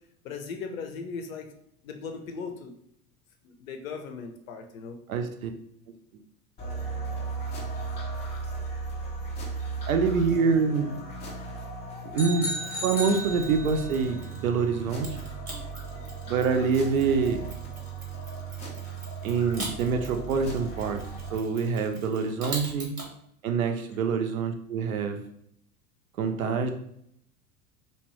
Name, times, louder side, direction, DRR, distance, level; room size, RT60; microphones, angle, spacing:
voice 1, 0.2-1.5 1.8-2.7 3.4-5.0, left 5 dB, 65° left, 5 dB, 0.6 m, -38 dB
voice 2, 5.1-5.5 9.9-10.9 12.1-12.5 12.8-15.1 16.3-17.5 19.2-21.0 21.3-22.9 23.4-25.2 26.2-26.7, right 5 dB, 65° right, 6 dB, 0.5 m, -26 dB
sound 1, 6.6-21.4, right 4 dB, 15° left, 0.4 m, -36 dB
sound 2, 12.1-14.0, right 1 dB, 5° right, 0.8 m, -34 dB
Mechanisms, 12.6-14.5 15.0-23.1, right 2 dB, 85° right, 0.9 m, -43 dB
2.8 x 2.1 x 3.2 m, 0.70 s
figure-of-eight pair, 80°, 45 cm